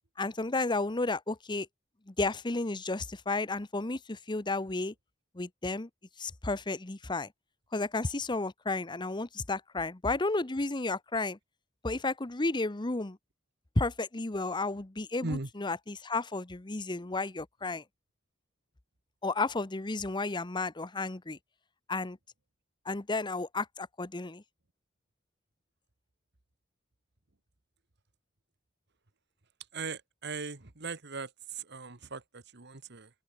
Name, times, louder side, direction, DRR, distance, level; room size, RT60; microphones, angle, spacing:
voice 1, 0.2-1.7 2.1-4.9 5.3-5.9 6.2-7.3 7.7-11.4 11.8-13.2 13.8-17.8 19.2-21.4 21.9-22.2 22.8-24.4, left 3 dB, 25° left, 0.9 m, -32 dB
voice 2, 29.7-33.1, right 3 dB, 60° right, 1.7 m, -39 dB
open air
head